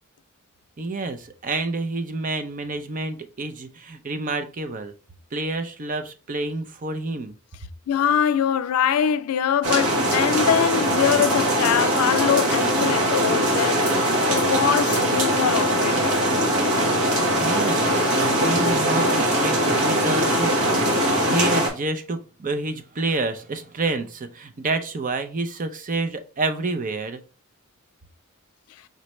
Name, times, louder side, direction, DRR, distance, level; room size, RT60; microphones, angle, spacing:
voice 1, 0.8-4.9 5.3-7.3 17.3-27.2, right 3 dB, 40° right, 0.5 m, -28 dB
voice 2, 7.9-13.8 14.3-16.2, left 8 dB, 90° left, 0.4 m, -23 dB
sound 1, 9.6-21.7, equal, 80° right, 1.4 m, -21 dB
5.3 x 3.2 x 3.0 m
head